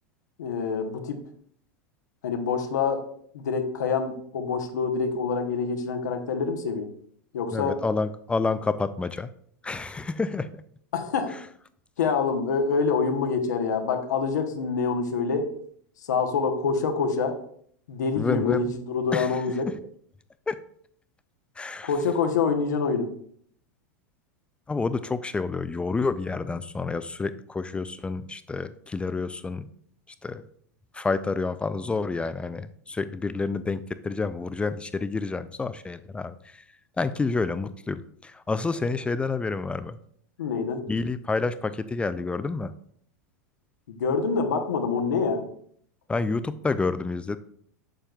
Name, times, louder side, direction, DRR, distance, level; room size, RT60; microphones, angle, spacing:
voice 1, 0.4-1.2 2.2-3.0 3.3-6.9 7.3-7.8 10.9-11.4 12.0-15.5 16.1-17.4 17.9-19.7 21.8-23.1 40.4-40.8 43.9-45.5, left 5 dB, 80° left, 5 dB, 0.9 m, -26 dB
voice 2, 7.5-9.3 9.6-10.6 11.3-11.4 18.2-18.7 19.1-19.4 19.7-19.8 20.5-20.6 21.6-21.9 24.7-29.7 30.2-30.4 30.9-36.6 37.0-40.0 40.9-42.7 46.1-47.4, left 3 dB, 10° left, 13 dB, 0.3 m, -29 dB
7.4 x 6.9 x 2.3 m, 0.63 s
hypercardioid pair, 105°, 9 cm